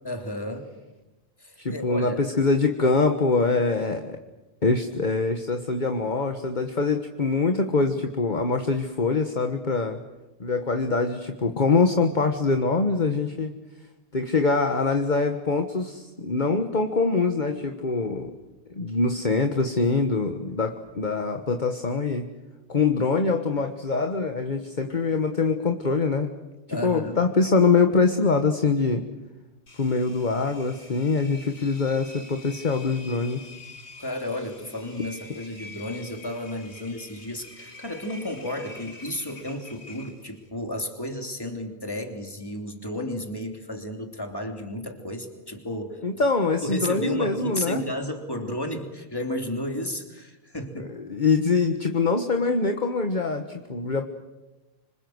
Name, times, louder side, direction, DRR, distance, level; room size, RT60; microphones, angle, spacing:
voice 1, 0.0-0.7 1.4-2.2 26.7-27.2 34.0-46.0 46.6-50.9, left 1 dB, 20° left, 4 dB, 3.2 m, -33 dB
voice 2, 1.6-4.2 4.6-10.0 10.4-13.5 14.1-18.3 18.7-22.3 22.7-26.3 26.8-29.0 29.8-33.5 46.0-47.8 50.8-54.1, left 4 dB, 45° left, 6 dB, 1.6 m, -24 dB
Engine, 29.7-40.5, left 3 dB, 80° left, 3.0 m, -46 dB
26.0 x 26.0 x 8.0 m, 1.0 s
omnidirectional pair, 1.1 m